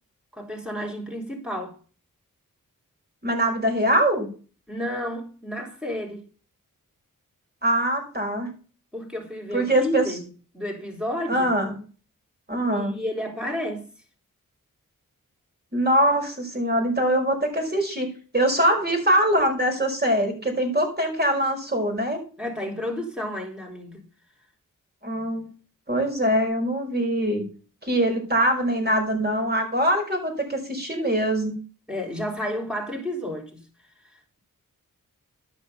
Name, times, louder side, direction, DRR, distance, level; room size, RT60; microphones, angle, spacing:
voice 1, 0.3-1.8 4.7-6.3 8.9-10.3 10.5-11.5 12.7-13.9 22.4-24.0 31.9-33.6, equal, 5° right, 3.9 m, -31 dB
voice 2, 3.2-4.3 7.6-8.5 9.5-10.0 11.3-11.7 12.5-13.0 15.7-18.1 18.3-22.2 25.0-25.5 25.9-27.4 27.8-31.6, right 1 dB, 30° right, 5.3 m, -23 dB
12.5 x 5.5 x 5.6 m
cardioid pair, 60°, 34 cm